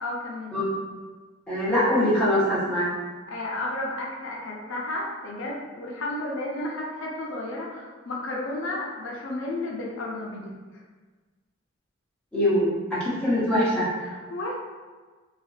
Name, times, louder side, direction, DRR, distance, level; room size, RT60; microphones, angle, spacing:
voice 1, 0.0-0.6 3.3-10.5 14.0-14.5, left 2 dB, 75° left, -2 dB, 0.5 m, -32 dB
voice 2, 1.5-2.9 12.3-13.9, left 1 dB, 5° left, -11 dB, 0.8 m, -23 dB
2.8 x 2.5 x 2.4 m, 1.4 s
head